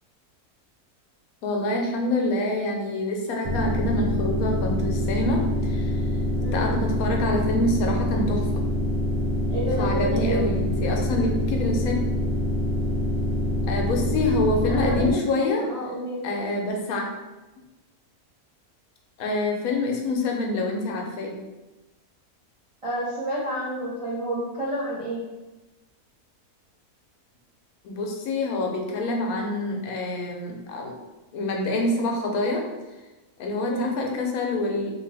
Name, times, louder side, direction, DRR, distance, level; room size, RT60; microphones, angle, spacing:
voice 1, 1.4-6.0 6.5-8.5 9.8-11.9 13.7-15.6 16.2-17.1 19.2-21.4 27.8-30.9 31.3-32.6 33.4-34.9, left 2 dB, 75° left, 1 dB, 1.0 m, -26 dB
sound 1, 3.4-15.1, left 1 dB, 85° right, 1.1 m, -25 dB
voice 2, 6.4-6.7 9.5-10.5 14.7-16.2 22.8-25.2 33.6-34.0, right 1 dB, 65° right, -8 dB, 0.3 m, -30 dB
2.8 x 2.3 x 3.2 m, 1.1 s
omnidirectional pair, 1.6 m